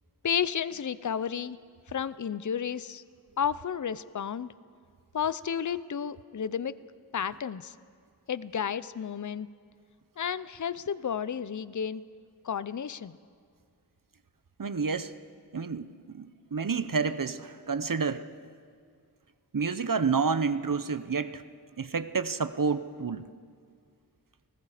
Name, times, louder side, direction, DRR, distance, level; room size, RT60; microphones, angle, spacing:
voice 1, 0.2-1.6 1.9-3.0 3.4-4.5 5.1-6.8 7.1-7.7 8.3-9.5 10.2-12.0 12.4-13.2, left 8 dB, 50° left, 17 dB, 0.6 m, -32 dB
voice 2, 14.6-15.1 15.5-15.9 16.1-18.2 19.5-21.4 21.8-23.2, right 5 dB, 55° right, 12 dB, 0.8 m, -29 dB
30.0 x 19.0 x 5.0 m, 2.1 s
wide cardioid pair, 55°, 39 cm